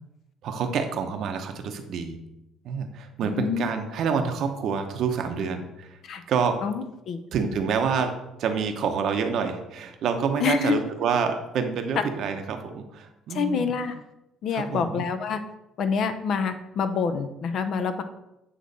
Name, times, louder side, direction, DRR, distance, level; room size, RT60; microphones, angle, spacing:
voice 1, 0.4-2.2 2.6-6.0 6.3-6.6 7.3-8.1 8.4-13.7 14.5-15.1, right 6 dB, 60° right, 6 dB, 0.8 m, -27 dB
voice 2, 3.2-3.7 6.0-6.2 6.6-7.2 10.4-10.7 13.3-13.9 14.4-15.4 15.8-18.0, left 6 dB, 60° left, 9 dB, 0.6 m, -27 dB
8.0 x 3.1 x 4.1 m, 0.90 s
cardioid pair, 105°, 0 cm